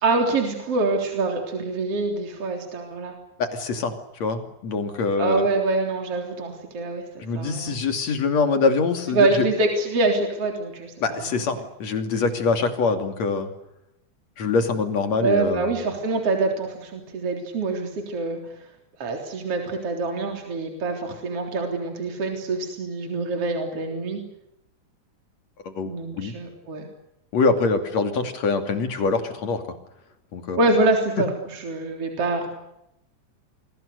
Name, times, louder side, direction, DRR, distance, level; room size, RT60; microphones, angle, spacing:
voice 1, 0.0-3.1 5.2-7.8 9.1-10.9 11.3-11.4 15.2-18.4 19.0-24.2 25.8-26.9 30.6-32.5, right 3 dB, 50° right, 3 dB, 4.5 m, -25 dB
voice 2, 3.4-5.5 7.2-9.4 11.0-13.5 14.4-15.7 25.7-26.4 27.3-29.6 30.3-30.6, left 4 dB, 60° left, 7 dB, 3.9 m, -24 dB
29.0 x 23.5 x 6.7 m, 0.85 s
omnidirectional pair, 3.5 m